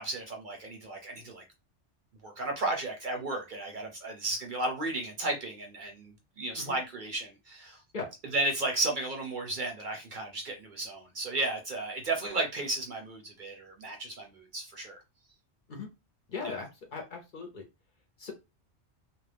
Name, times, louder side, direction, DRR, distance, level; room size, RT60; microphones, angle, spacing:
voice 1, 0.0-1.4 2.2-7.8 8.3-15.0 16.4-16.6, right 2 dB, 50° right, 0.7 m, -34 dB
voice 2, 16.3-17.7 18.2-18.3, left 4 dB, 50° left, 0.8 m, -39 dB
2.5 x 2.2 x 3.3 m
omnidirectional pair, 1.2 m